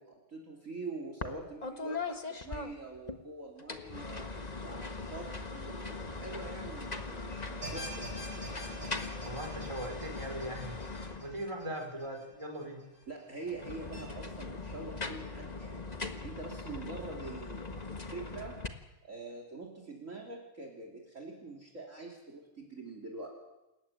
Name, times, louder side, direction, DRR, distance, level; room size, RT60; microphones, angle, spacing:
voice 1, 0.0-4.2 4.6-8.1 8.5-8.7 13.1-15.9 16.2-18.6 19.0-23.3, right 3 dB, 35° right, 2 dB, 3.5 m, -45 dB
sound 1, 1.2-1.4 1.6-3.2 3.6-11.6 13.4-18.7, left 3 dB, 20° left, 1.4 m, -40 dB
sound 2, 7.6-12.8 13.2-13.3 13.9-14.0, right 1 dB, 60° right, 8.9 m, -47 dB
voice 2, 9.2-10.8 11.2-12.8, right 1 dB, 15° right, 2 dB, 4.6 m, -40 dB
28.0 x 14.5 x 9.3 m, 0.96 s
omnidirectional pair, 2.3 m